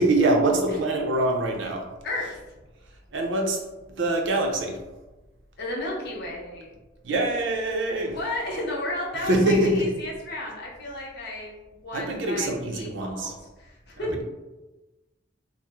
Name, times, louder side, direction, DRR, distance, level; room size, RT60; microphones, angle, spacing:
voice 1, 0.0-1.8 3.1-3.6 4.0-4.8 7.0-8.2 9.2-9.8 11.9-13.3, right 2 dB, 70° right, 1 dB, 0.5 m, -24 dB
voice 2, 5.6-6.7 8.0-11.5 11.8-14.2, left 1 dB, 55° left, -3 dB, 0.7 m, -33 dB
2.9 x 2.0 x 3.4 m, 1.1 s
head